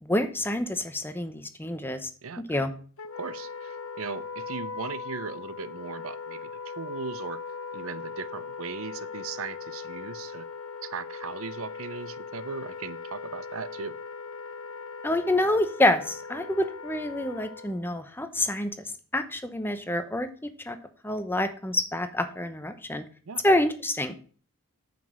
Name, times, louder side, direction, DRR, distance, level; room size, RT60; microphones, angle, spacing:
voice 1, 0.0-2.1 2.5-2.7 15.0-18.9 19.1-20.8 21.0-23.0 23.4-24.1, left 1 dB, 10° left, 9 dB, 0.9 m, -27 dB
voice 2, 2.2-2.7 3.1-7.4 7.7-10.5 10.8-14.0 23.3-23.4, right 5 dB, 70° right, 15 dB, 0.6 m, -38 dB
Wind instrument woodwind instrument, 3.0-17.9, left 5 dB, 70° left, 0.8 m, -39 dB
9.1 x 5.1 x 7.3 m, 0.42 s
head